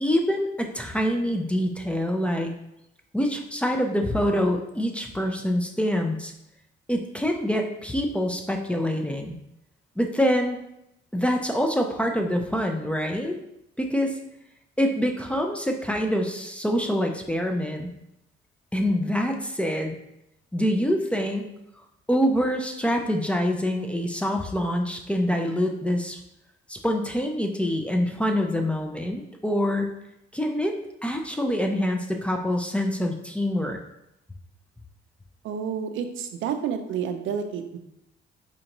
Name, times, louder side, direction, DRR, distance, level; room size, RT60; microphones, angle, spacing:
voice 1, 0.0-2.5 3.1-6.3 6.9-9.3 10.0-10.6 11.1-13.3 13.8-14.1 14.8-17.9 18.7-20.0 20.5-21.5 22.1-26.2 26.7-29.9 30.3-30.7 31.0-33.8, equal, 5° left, 3 dB, 0.4 m, -25 dB
voice 2, 35.4-37.8, right 7 dB, 80° right, 7 dB, 0.4 m, -30 dB
4.4 x 2.5 x 2.9 m, 0.82 s
cardioid pair, 90°, 20 cm